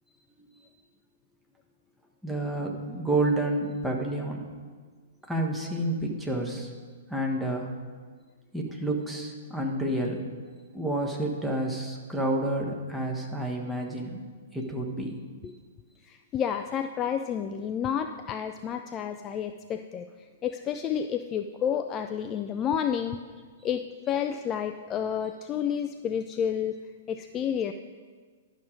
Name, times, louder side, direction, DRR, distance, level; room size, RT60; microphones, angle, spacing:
voice 1, 2.2-4.4 5.3-6.7 7.1-7.7 8.5-10.2 10.7-14.2 14.5-15.2, right 1 dB, 5° right, 0 dB, 1.3 m, -29 dB
voice 2, 16.0-23.2 23.6-26.8 27.1-27.7, left 8 dB, 25° left, 7 dB, 0.3 m, -30 dB
11.5 x 6.3 x 5.1 m, 1.5 s
figure-of-eight pair, 110°, 0 cm